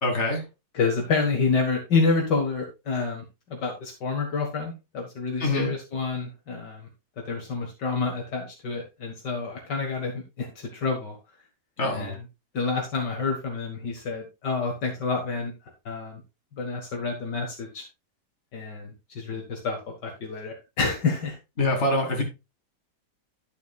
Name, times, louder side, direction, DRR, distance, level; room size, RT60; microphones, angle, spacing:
voice 1, 0.0-0.4 5.4-5.7 11.8-12.2 21.6-22.2, left 2 dB, 35° left, 1 dB, 3.1 m, -24 dB
voice 2, 0.7-3.2 3.5-6.9 7.3-11.2 11.8-12.1 12.5-15.5 15.9-16.2 16.6-17.8 18.5-21.4, left 4 dB, 70° left, 2 dB, 2.1 m, -28 dB
11.5 x 8.1 x 2.3 m, 0.25 s
omnidirectional pair, 2.0 m